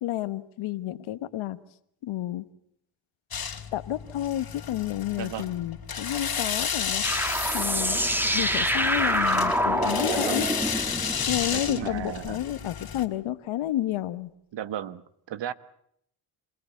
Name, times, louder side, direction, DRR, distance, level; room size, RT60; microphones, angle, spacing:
voice 1, 0.0-1.6 2.0-2.4 3.7-7.1 7.5-8.0 8.3-10.5 11.3-14.3, left 13 dB, 75° left, 13 dB, 1.3 m, -30 dB
sound 1, 3.3-13.0, left 7 dB, 45° left, 2.3 m, -33 dB
voice 2, 5.2-5.7 10.1-10.5 11.5-12.4 14.5-15.0 15.3-15.5, right 10 dB, 60° right, 15 dB, 1.2 m, -35 dB
sound 2, 7.0-12.3, equal, 5° right, 2.2 m, -26 dB
26.5 x 17.0 x 8.3 m, 0.72 s
supercardioid pair, 55°, 49 cm